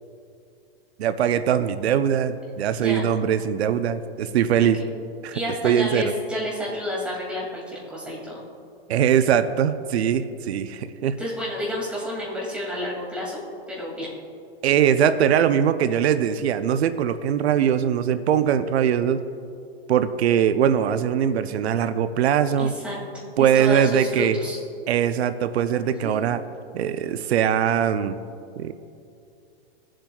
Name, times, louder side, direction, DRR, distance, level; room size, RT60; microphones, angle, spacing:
voice 1, 1.0-4.8 5.2-6.1 8.9-11.2 14.6-19.2 19.9-22.7 23.4-24.4 24.9-26.4 26.7-28.2 28.6-28.7, right 9 dB, 90° right, 11 dB, 0.6 m, -21 dB
voice 2, 5.3-8.4 11.2-13.4 13.7-14.1 22.6-23.0 23.4-24.6 26.0-26.1, left 1 dB, 5° right, -5 dB, 2.3 m, -30 dB
17.0 x 7.5 x 2.3 m, 2.5 s
supercardioid pair, 150°, 31 cm